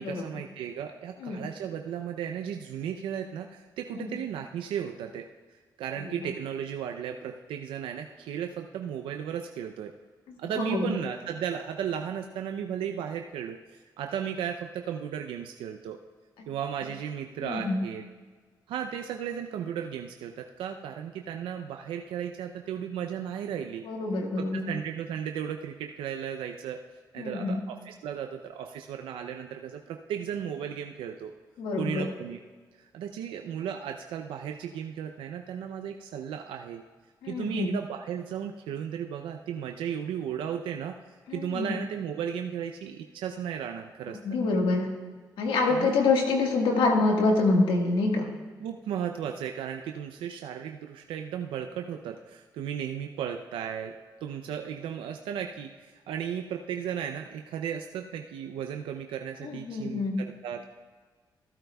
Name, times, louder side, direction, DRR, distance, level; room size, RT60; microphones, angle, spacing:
voice 1, 0.0-5.3 5.8-9.9 10.4-16.0 16.5-18.0 18.7-23.8 24.4-26.8 27.1-31.3 31.8-32.4 32.7-36.8 37.3-41.0 41.3-44.2 45.7-45.9 48.6-53.9 54.2-60.6, right 8 dB, 90° right, 4 dB, 0.5 m, -35 dB
voice 2, 10.3-11.0 16.4-16.5 17.4-17.8 23.8-24.7 27.2-27.6 31.6-32.0 37.2-37.7 41.3-41.7 44.2-44.9 45.4-48.3 59.4-60.2, left 3 dB, 85° left, 1 dB, 1.6 m, -26 dB
15.5 x 8.9 x 2.3 m, 1.5 s
supercardioid pair, 55°, 9 cm